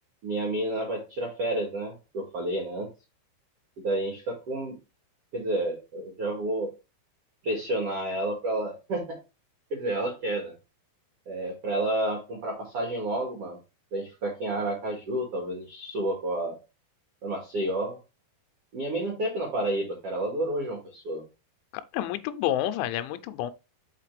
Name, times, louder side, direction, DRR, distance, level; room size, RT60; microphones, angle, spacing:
voice 1, 0.2-2.9 3.8-4.8 5.3-6.7 7.4-9.2 9.7-10.5 11.3-13.6 13.9-16.6 17.2-18.0 18.7-21.2, right 1 dB, 60° right, 1.6 m, -30 dB
voice 2, 21.9-23.5, left 12 dB, 85° left, 2.9 m, -29 dB
5.8 x 5.7 x 3.2 m
omnidirectional pair, 5.6 m